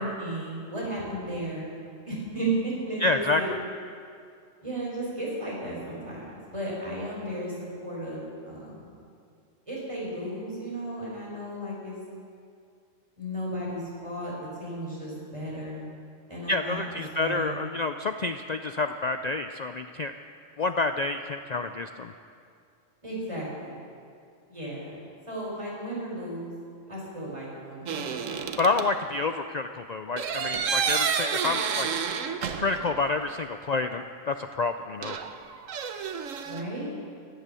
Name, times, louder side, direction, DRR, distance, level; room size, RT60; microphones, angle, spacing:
voice 1, 0.0-1.7 2.1-3.5 4.6-8.7 9.7-12.0 13.2-14.3 14.6-15.9 16.3-16.8 17.2-17.6 23.0-23.8 24.5-25.0 25.3-26.5 26.9-28.3 36.4-36.9, right 1 dB, 25° right, -5 dB, 5.3 m, -34 dB
voice 2, 3.0-3.6 16.5-20.1 20.6-22.1 28.6-31.9 32.6-35.2, left 3 dB, 65° left, 8 dB, 0.4 m, -28 dB
sound 1, 27.9-28.9 30.2-33.0 33.3-33.4 35.0-36.6, right 6 dB, 85° right, 1.2 m, -30 dB
16.5 x 11.5 x 6.9 m, 2.4 s
omnidirectional pair, 1.3 m